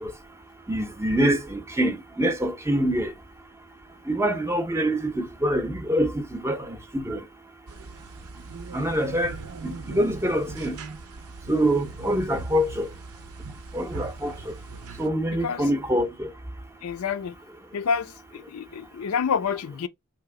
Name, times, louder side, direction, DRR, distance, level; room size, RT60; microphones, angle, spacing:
voice 1, 0.7-3.1 4.1-7.2 8.7-9.4 9.6-10.8 11.5-12.9 13.7-14.5 15.0-16.3, right 1 dB, 10° right, 0.6 m, -25 dB
sound 1, 7.7-15.1, right 3 dB, 85° right, 0.6 m, -40 dB
voice 2, 15.3-15.6 16.8-17.4 17.7-19.9, left 6 dB, 75° left, 0.4 m, -28 dB
3.3 x 2.9 x 4.7 m
head